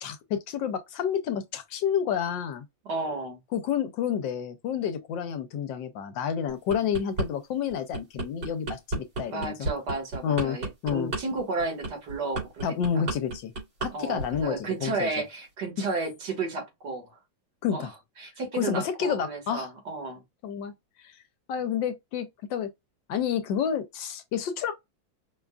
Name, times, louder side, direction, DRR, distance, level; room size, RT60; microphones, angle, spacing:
voice 1, 0.0-2.6 3.5-9.7 10.2-10.6 10.8-11.1 12.6-13.5 13.8-15.1 15.8-15.9 17.6-17.9 18.5-19.7 20.4-20.7 21.0-21.1 21.5-22.7 23.1-24.7, left 8 dB, 75° left, 1.3 m, -29 dB
voice 2, 2.9-3.4 9.3-12.7 12.9-13.0 13.9-17.2 17.7-17.9 18.2-20.2, right 3 dB, 60° right, 1.9 m, -33 dB
sound 1, 6.5-7.3 7.7-13.9 14.2-14.5, right 2 dB, 80° right, 3.2 m, -32 dB
5.2 x 2.4 x 2.2 m
omnidirectional pair, 2.1 m